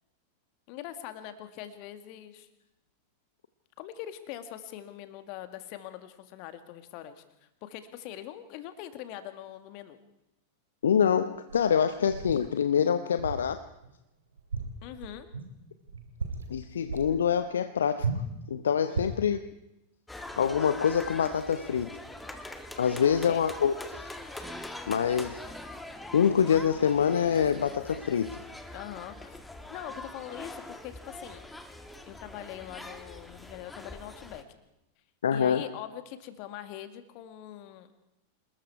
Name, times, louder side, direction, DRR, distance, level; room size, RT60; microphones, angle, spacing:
voice 1, 0.7-2.5 3.8-7.2 7.6-10.0 14.8-15.3 18.9-19.5 23.0-23.4 28.7-29.4 29.7-31.4 32.1-34.4 35.3-37.9, left 12 dB, 45° left, 10 dB, 2.0 m, -43 dB
voice 2, 10.8-13.6 16.5-18.1 18.5-19.4 20.4-21.9 22.8-24.0 24.9-25.4 26.1-28.4 35.2-35.7, left 7 dB, 65° left, 10 dB, 0.8 m, -25 dB
sound 1, 11.5-12.5 13.2-13.5 13.8-14.0 14.4-15.5 15.9-16.6 16.9-17.1 18.0-18.4 18.9-19.3, right 4 dB, 70° right, 2.7 m, -35 dB
sound 2, 20.1-34.4, left 1 dB, 5° left, 1.8 m, -43 dB
27.5 x 20.5 x 4.7 m, 0.90 s
figure-of-eight pair, 90°, 0 cm